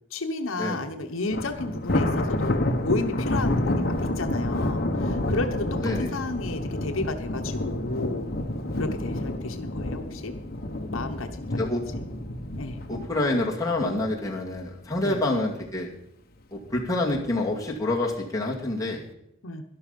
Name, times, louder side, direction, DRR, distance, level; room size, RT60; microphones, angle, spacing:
voice 1, 0.1-8.3 8.8-10.4 10.9-11.6 12.6-12.8 15.0-15.2 19.4-19.6, left 2 dB, 80° left, 6 dB, 1.0 m, -32 dB
Thunder, 1.3-14.6 15.0-15.3 15.7-15.8 16.6-17.2, left 1 dB, 45° left, 1.2 m, -29 dB
voice 2, 5.8-6.1 8.8-9.2 11.6-11.8 12.9-15.9 16.5-19.0, left 2 dB, 15° left, -3 dB, 2.3 m, -28 dB
12.5 x 11.5 x 5.3 m, 0.79 s
head